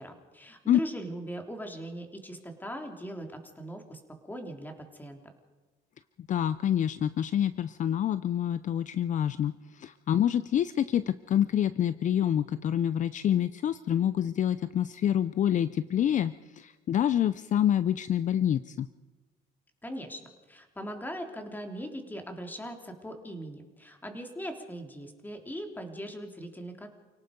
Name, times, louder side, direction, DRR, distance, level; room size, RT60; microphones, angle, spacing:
voice 1, 0.0-5.2 19.8-20.2 20.5-26.9, equal, 10° left, 4 dB, 3.4 m, -40 dB
voice 2, 6.3-18.9, left 10 dB, 45° left, 15 dB, 0.6 m, -27 dB
29.0 x 18.0 x 5.3 m, 1.3 s
cardioid pair, 110°, 17 cm